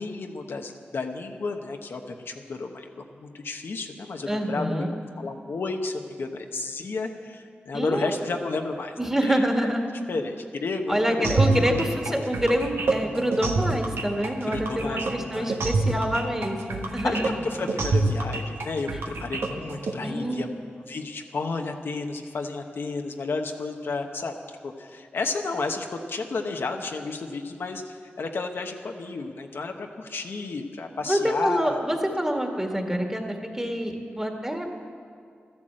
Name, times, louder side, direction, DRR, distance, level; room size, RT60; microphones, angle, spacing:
voice 1, 0.0-4.8 5.2-9.7 10.1-12.2 14.5-15.6 17.0-20.5 20.9-24.3 24.6-31.8, left 3 dB, 75° left, 3 dB, 1.0 m, -32 dB
voice 2, 4.3-4.9 7.7-8.2 9.0-9.9 10.9-17.3 20.0-20.4 31.1-34.7, equal, 10° right, 3 dB, 1.8 m, -26 dB
sound 1, 11.2-19.9, right 3 dB, 85° right, 1.2 m, -26 dB
13.0 x 10.5 x 7.6 m, 2.2 s
cardioid pair, 60°, 4 cm